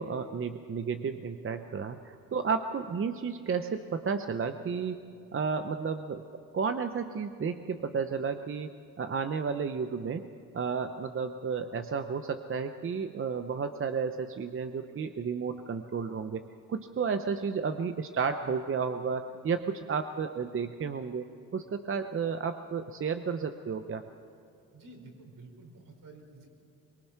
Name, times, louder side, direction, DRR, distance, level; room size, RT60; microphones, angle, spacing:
voice 1, 0.0-5.0 5.3-6.2 6.5-10.3 10.5-16.4 16.7-21.3 21.5-24.0, right 5 dB, 35° right, 8 dB, 0.8 m, -32 dB
voice 2, 24.7-26.5, right 2 dB, 65° right, 2 dB, 4.6 m, -51 dB
23.5 x 22.0 x 5.8 m, 2.7 s
cardioid pair, 115°, 35 cm